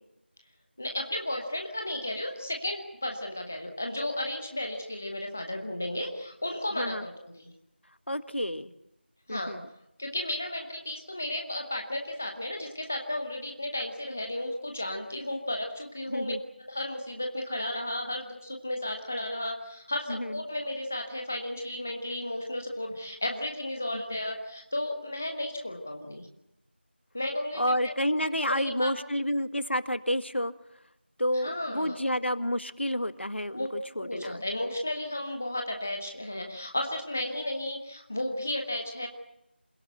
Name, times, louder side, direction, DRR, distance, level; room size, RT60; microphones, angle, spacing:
voice 1, 0.8-7.5 9.3-9.6 10.0-16.3 16.7-26.3 27.1-28.9 31.4-32.0 33.5-33.7 34.0-39.1, left 1 dB, 10° left, 3 dB, 0.9 m, -34 dB
voice 2, 8.1-8.7 9.3-9.6 16.1-16.4 20.1-20.4 23.9-24.0 27.5-30.5 31.2-34.4, equal, 75° left, 11 dB, 1.7 m, -30 dB
27.5 x 17.0 x 8.1 m, 0.84 s
figure-of-eight pair, 175°, 6 cm